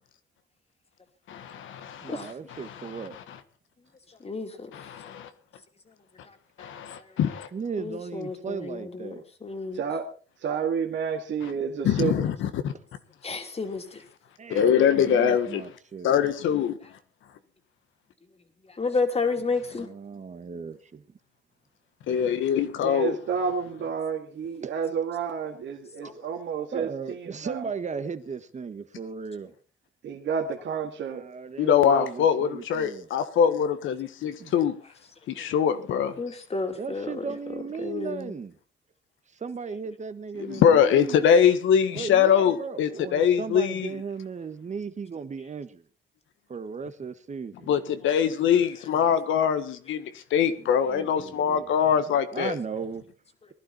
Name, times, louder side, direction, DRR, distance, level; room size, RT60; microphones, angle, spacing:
voice 1, 1.3-2.1 2.6-3.4 4.7-5.3 6.6-7.5 11.8-12.7 14.5-15.6 16.0-16.8 22.1-23.2 31.6-34.7 35.3-36.1 40.4-44.0 47.7-52.5, left 8 dB, 80° left, 10 dB, 1.6 m, -23 dB
voice 2, 2.0-3.2 7.5-9.2 14.4-16.1 19.7-21.0 24.6-24.7 26.7-29.5 31.1-33.1 34.4-34.5 36.7-38.6 39.3-41.2 41.9-45.8 46.5-47.7 50.8-51.7 52.3-53.1, right 5 dB, 35° right, 11 dB, 1.5 m, -36 dB
voice 3, 4.1-4.7 6.2-7.1 7.8-9.8 13.2-14.0 18.7-19.9 26.0-26.3 36.2-37.2 37.8-38.3, left 4 dB, 30° left, 5 dB, 3.1 m, -31 dB
voice 4, 9.7-10.1 10.4-12.2 22.8-27.6 30.0-31.2, right 6 dB, 65° right, 2 dB, 2.1 m, -30 dB
20.0 x 11.5 x 4.3 m, 0.38 s
cardioid pair, 90°, 20 cm